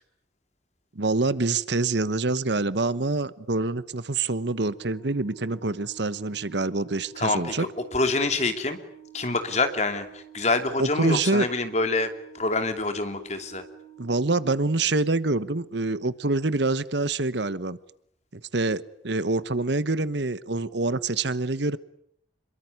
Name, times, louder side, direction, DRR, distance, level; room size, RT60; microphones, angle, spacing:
voice 1, 0.9-7.7 10.8-11.5 14.0-17.8 18.3-21.8, right 3 dB, 70° right, 16 dB, 1.2 m, -26 dB
Organ, 4.4-15.3, right 12 dB, 35° right, 6.0 m, -50 dB
voice 2, 7.2-7.7 7.9-8.8 9.1-12.1 12.3-13.6, left 3 dB, 35° left, 7 dB, 2.9 m, -26 dB
27.0 x 23.0 x 9.6 m, 0.69 s
head